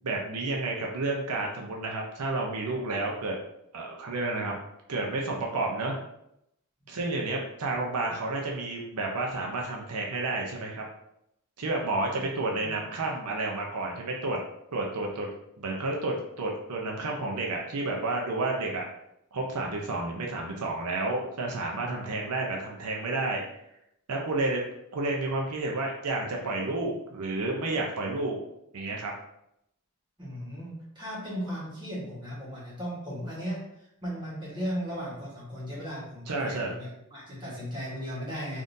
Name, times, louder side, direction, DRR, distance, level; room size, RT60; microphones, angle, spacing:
voice 1, 0.0-3.3 3.7-4.5 4.9-6.0 6.9-10.8 11.6-14.4 14.7-15.3 15.6-18.9 19.3-23.4 24.1-24.6 24.9-28.4 28.7-29.1 36.3-36.7, right 2 dB, 90° right, -1 dB, 0.6 m, -30 dB
voice 2, 30.2-33.6 34.0-38.6, equal, 20° right, -6 dB, 1.2 m, -36 dB
3.6 x 2.6 x 2.6 m, 0.79 s
head